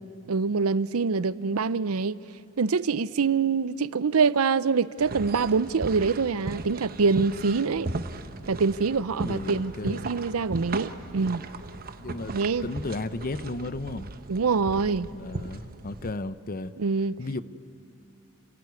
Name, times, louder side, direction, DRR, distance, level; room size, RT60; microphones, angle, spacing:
voice 1, 0.3-2.2 2.6-7.9 8.5-11.4 12.3-12.7 14.3-15.1 16.8-17.1, right 5 dB, 85° right, 0.6 m, -25 dB
sound 1, 5.0-16.1, right 2 dB, 45° right, 0.9 m, -37 dB
voice 2, 9.2-10.1 12.0-12.4 12.6-14.1 15.1-16.7 17.2-17.4, left 2 dB, 45° left, 0.7 m, -34 dB
29.5 x 17.0 x 9.5 m
head